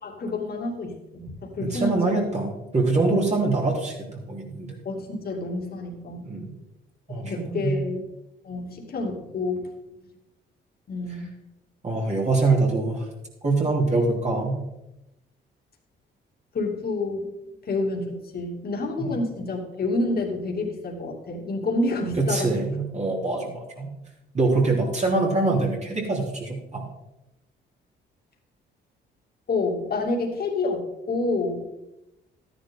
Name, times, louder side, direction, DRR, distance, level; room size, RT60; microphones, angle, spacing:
voice 1, 0.0-2.3 4.8-6.3 7.1-8.0 8.4-9.7 10.9-11.3 16.5-17.3 17.7-22.6 29.5-31.6, left 2 dB, 50° left, 1 dB, 2.6 m, -28 dB
voice 2, 1.6-4.8 6.2-6.5 7.1-7.8 11.8-13.1 13.4-14.6 19.0-19.1 22.2-23.9 24.3-26.8, right 3 dB, 35° right, -2 dB, 3.4 m, -24 dB
12.5 x 10.0 x 3.8 m, 0.92 s
cardioid pair, 90°, 20 cm